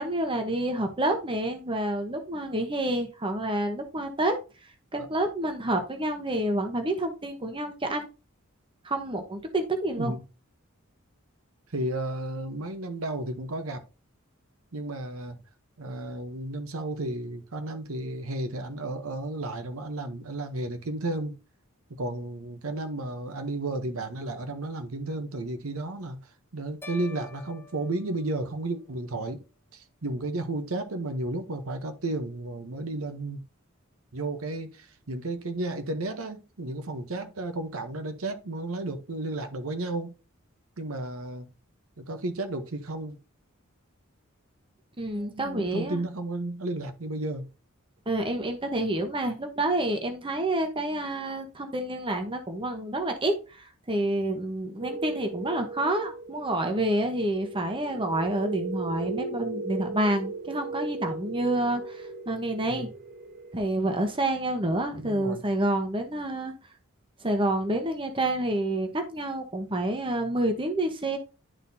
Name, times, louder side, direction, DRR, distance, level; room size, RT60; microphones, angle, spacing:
voice 1, 0.0-4.4 4.9-8.1 8.8-10.1 45.0-46.0 48.1-62.9 63.5-66.5 67.2-71.2, right 1 dB, 25° right, 1.0 m, -28 dB
voice 2, 11.7-13.8 14.7-15.4 15.8-21.3 21.9-29.4 29.7-33.4 34.1-40.1 40.8-41.5 42.0-43.2 45.1-47.5 62.7-62.9 64.9-65.4, right 2 dB, 80° right, 0.9 m, -33 dB
sound 1, 26.8-29.1, left 3 dB, 10° left, 0.7 m, -48 dB
sound 2, 54.8-63.5, right 4 dB, 45° right, 1.4 m, -37 dB
11.0 x 4.1 x 2.7 m
head